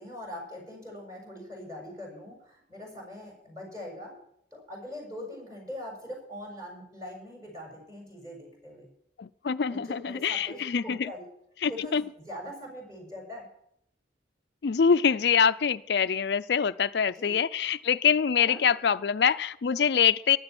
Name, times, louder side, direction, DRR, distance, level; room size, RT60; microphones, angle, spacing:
voice 1, 0.0-4.1 4.5-8.9 9.6-11.2 11.6-13.5 17.1-17.3 18.4-18.6, left 1 dB, 20° right, 1 dB, 6.6 m, -42 dB
voice 2, 9.2-11.1 11.6-12.0 14.6-20.4, left 7 dB, 70° left, 13 dB, 0.4 m, -25 dB
15.5 x 11.5 x 6.0 m, 0.73 s
head